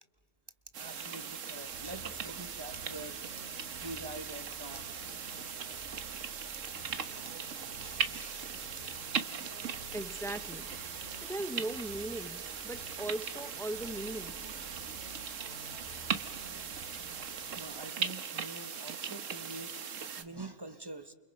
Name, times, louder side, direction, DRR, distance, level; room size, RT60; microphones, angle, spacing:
sound 1, 0.7-20.2, right 7 dB, 85° right, 1.6 m, -39 dB
voice 1, 0.8-3.2 3.8-4.9 7.5-9.3 9.6-9.7 14.9-15.0 17.5-19.8 20.2-21.1, right 2 dB, 20° right, 1.2 m, -46 dB
sound 2, 1.7-17.7, equal, 65° right, 4.4 m, -53 dB
voice 2, 9.9-10.7 11.2-14.4, right 1 dB, 5° left, 0.4 m, -38 dB
29.5 x 28.5 x 5.4 m
omnidirectional pair, 1.3 m